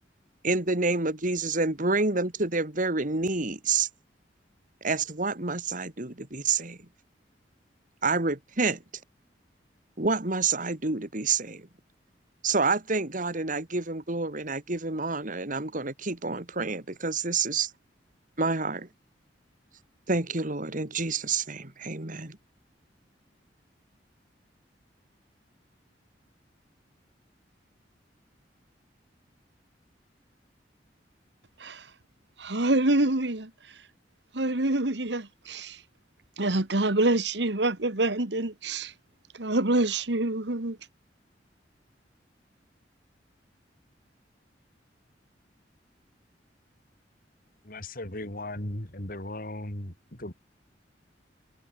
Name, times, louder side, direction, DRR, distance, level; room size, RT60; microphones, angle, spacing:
voice 1, 0.4-3.9 4.8-6.8 8.0-8.8 10.0-11.7 12.4-17.7 18.4-18.9 20.1-22.4, right 3 dB, 50° right, 2.5 m, -28 dB
voice 2, 32.4-33.5 34.3-35.8 36.4-38.9 39.4-40.8, right 2 dB, 70° right, 1.9 m, -26 dB
voice 3, 47.7-50.3, left 1 dB, 50° left, 4.2 m, -37 dB
head